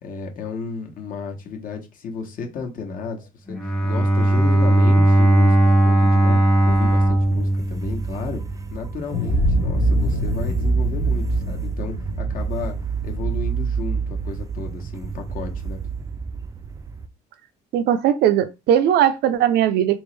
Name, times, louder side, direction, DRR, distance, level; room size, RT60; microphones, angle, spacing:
voice 1, 0.0-8.4 8.7-12.8 13.0-15.8, left 5 dB, 55° left, 1.0 m, -33 dB
Bowed string instrument, 3.5-8.5, right 1 dB, 5° left, 0.8 m, -17 dB
sound 1, 6.7-17.1, right 6 dB, 20° right, 0.4 m, -30 dB
sound 2, 9.1-13.9, right 1 dB, 80° left, 1.0 m, -23 dB
voice 2, 17.7-20.0, right 10 dB, 75° right, 0.5 m, -18 dB
3.5 x 2.9 x 3.2 m
cardioid pair, 110°, 17 cm